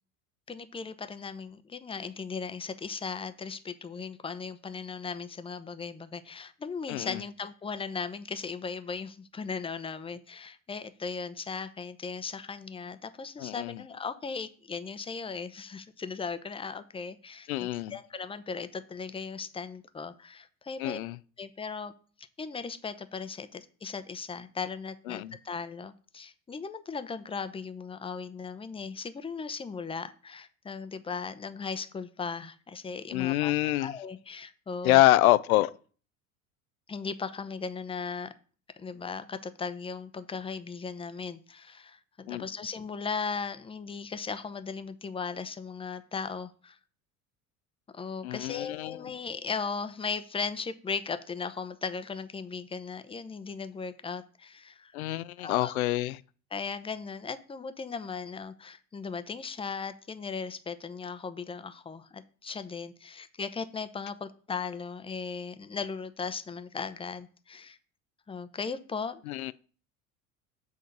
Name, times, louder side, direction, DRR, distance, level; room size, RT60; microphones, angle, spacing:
voice 1, 0.5-21.0 21.4-21.9 22.4-33.5 33.8-35.0 36.9-38.3 38.8-46.8 47.9-54.9 55.4-55.7 56.5-67.8 68.3-69.2, left 5 dB, 15° left, 0.7 m, -37 dB
voice 2, 6.9-7.2 13.4-13.8 17.5-18.0 20.8-21.2 25.1-25.3 33.1-33.9 34.8-35.7 42.3-42.4 48.2-49.0 54.9-56.2 69.3-69.5, left 16 dB, 75° left, 0.5 m, -26 dB
7.8 x 3.8 x 6.6 m
hypercardioid pair, 70°, 42 cm